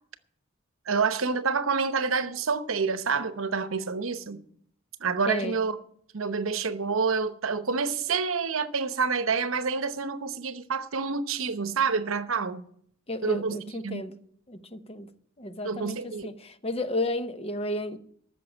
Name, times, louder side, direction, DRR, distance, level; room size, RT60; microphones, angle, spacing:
voice 1, 0.9-4.4 5.0-5.8 6.1-12.6 13.2-13.6 13.8-14.0 15.6-16.3, right 5 dB, 75° right, 0.9 m, -28 dB
voice 2, 5.3-5.6 13.1-14.2 14.5-15.1 15.4-18.0, left 1 dB, 30° left, 0.9 m, -32 dB
14.0 x 6.8 x 8.8 m
head